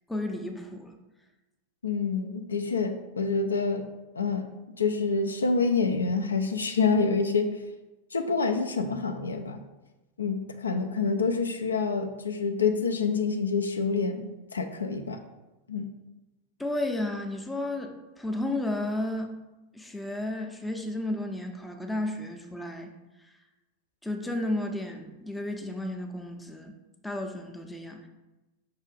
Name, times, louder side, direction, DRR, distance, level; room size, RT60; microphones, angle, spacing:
voice 1, 0.1-0.9 16.6-19.3 19.7-22.9 24.0-26.7 27.0-28.1, left 1 dB, 5° left, 3 dB, 0.5 m, -32 dB
voice 2, 1.8-4.5 4.8-7.6 8.1-9.6 10.2-15.2 15.7-15.9, left 4 dB, 75° left, 6 dB, 0.3 m, -27 dB
4.7 x 2.4 x 4.6 m, 1.1 s
figure-of-eight pair, 90°, 0 cm